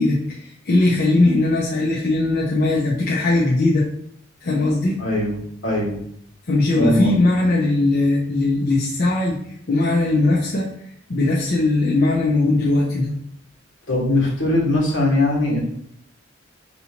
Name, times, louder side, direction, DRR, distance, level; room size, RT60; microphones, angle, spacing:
voice 1, 0.0-3.8 4.4-5.0 6.5-10.7 11.1-13.1, left 2 dB, 50° left, -4 dB, 0.6 m, -19 dB
voice 2, 5.0-5.3 5.6-6.0 6.8-7.1 13.9-15.6, left 1 dB, 80° left, -3 dB, 1.6 m, -20 dB
5.4 x 2.8 x 2.8 m, 0.68 s
head